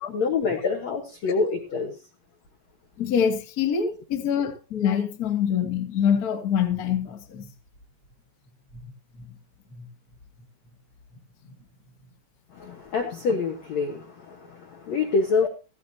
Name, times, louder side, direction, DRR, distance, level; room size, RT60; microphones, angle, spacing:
voice 1, 0.1-2.0 12.5-15.5, left 4 dB, 70° left, 3 dB, 1.7 m, -26 dB
voice 2, 3.0-7.4 9.7-9.8, left 8 dB, 50° left, 3 dB, 1.1 m, -25 dB
15.5 x 15.0 x 2.8 m, 0.31 s
omnidirectional pair, 5.0 m